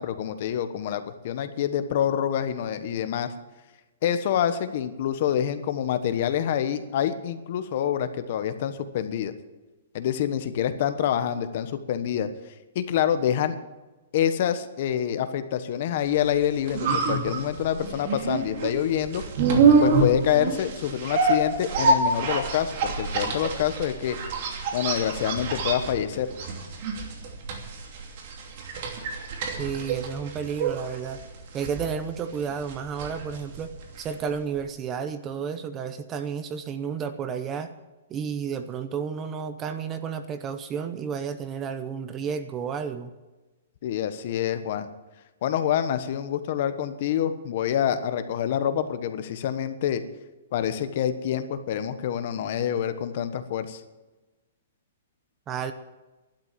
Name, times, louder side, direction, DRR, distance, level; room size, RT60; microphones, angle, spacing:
voice 1, 0.0-3.3 4.0-9.3 9.9-12.3 12.7-13.5 14.1-19.2 19.8-24.2 24.7-26.3 43.8-44.9 45.4-50.0 50.5-53.8, left 9 dB, 45° left, 11 dB, 1.2 m, -26 dB
sound 1, 16.3-34.3 34.6-34.7, right 4 dB, 40° right, 2.8 m, -26 dB
voice 2, 29.6-31.2 31.5-33.7 34.0-37.7 38.1-43.1 55.5-55.7, right 7 dB, 20° right, 10 dB, 0.8 m, -31 dB
12.0 x 12.0 x 7.5 m, 1.2 s
hypercardioid pair, 165°, 0 cm